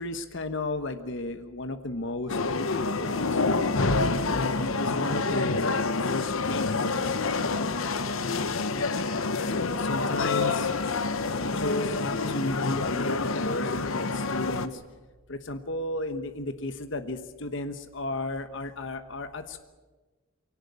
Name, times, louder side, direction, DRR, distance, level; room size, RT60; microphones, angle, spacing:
voice 1, 0.0-3.4 4.3-7.2 7.4-7.7 9.4-10.7 11.4-14.8 15.3-19.6, left 2 dB, 60° left, 9 dB, 1.2 m, -33 dB
sound 1, 2.3-14.7, left 3 dB, 80° left, 1.1 m, -27 dB
23.5 x 18.0 x 8.4 m, 1.3 s
head